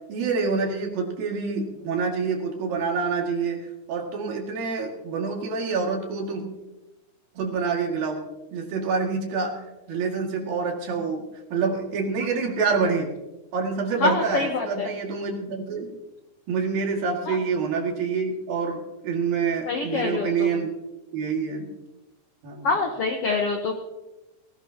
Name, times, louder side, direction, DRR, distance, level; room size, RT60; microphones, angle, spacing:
voice 1, 0.1-6.5 7.4-9.6 9.9-13.1 13.5-15.9 16.5-20.7 21.1-21.7 22.4-22.7, right 5 dB, 75° right, 0 dB, 3.9 m, -27 dB
voice 2, 14.0-14.9 17.3-17.4 19.7-20.5 22.6-23.7, left 4 dB, 70° left, 3 dB, 1.4 m, -25 dB
18.5 x 17.5 x 2.9 m, 1.0 s
omnidirectional pair, 4.1 m